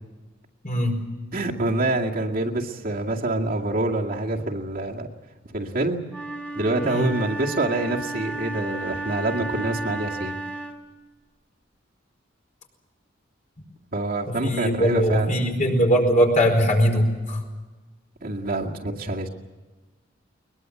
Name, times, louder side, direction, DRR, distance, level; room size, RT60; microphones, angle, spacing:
voice 1, 0.6-1.0 6.8-7.1 14.3-17.4, equal, 40° left, 2 dB, 4.8 m, -21 dB
voice 2, 1.3-5.1 5.5-6.1 6.6-10.4 13.9-15.4 18.2-19.3, right 2 dB, 50° right, -1 dB, 2.2 m, -26 dB
Wind instrument woodwind instrument, 6.1-10.9, right 2 dB, 5° left, 2.7 m, -33 dB
22.0 x 21.5 x 7.8 m, 1.2 s
head